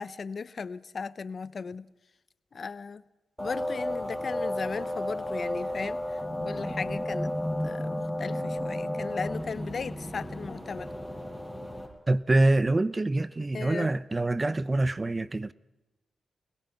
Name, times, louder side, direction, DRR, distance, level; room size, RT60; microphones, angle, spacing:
voice 1, 0.0-1.9 2.5-3.0 3.4-6.2 6.4-7.3 7.6-10.9 13.5-13.9, left 5 dB, 55° left, 0.7 m, -36 dB
sound 1, 3.4-11.9, left 1 dB, 5° right, 7.5 m, -33 dB
voice 2, 12.1-15.5, right 2 dB, 30° right, 0.9 m, -25 dB
24.5 x 21.0 x 5.8 m
supercardioid pair, 45°, 0 cm